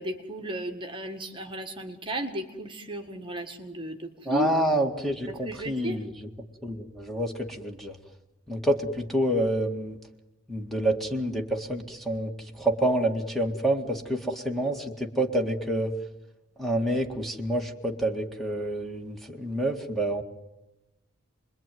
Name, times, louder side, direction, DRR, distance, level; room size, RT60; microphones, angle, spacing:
voice 1, 0.0-4.5 5.3-6.0, right 1 dB, 20° right, 5 dB, 1.8 m, -34 dB
voice 2, 4.3-6.1 6.6-7.9 8.5-9.9 10.5-12.3 12.6-14.8 15.2-15.9 16.6-20.2, right 1 dB, ahead, 2 dB, 2.0 m, -27 dB
28.5 x 22.0 x 9.4 m, 0.96 s
head